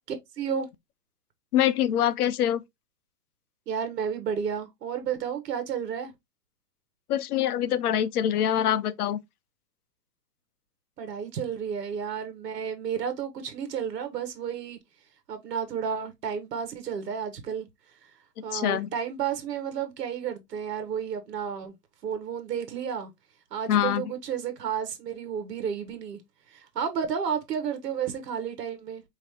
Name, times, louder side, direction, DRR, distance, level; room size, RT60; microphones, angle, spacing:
voice 1, 0.4-0.7 3.7-6.1 11.0-14.8 15.3-17.7 18.4-21.7 22.0-23.1 23.5-26.2 26.5-29.0, right 7 dB, 80° right, 1.2 m, -32 dB
voice 2, 1.5-2.6 7.1-9.2 18.5-18.9 23.7-24.0, left 10 dB, 65° left, 0.6 m, -24 dB
4.9 x 2.8 x 2.7 m
hypercardioid pair, 155°, 48 cm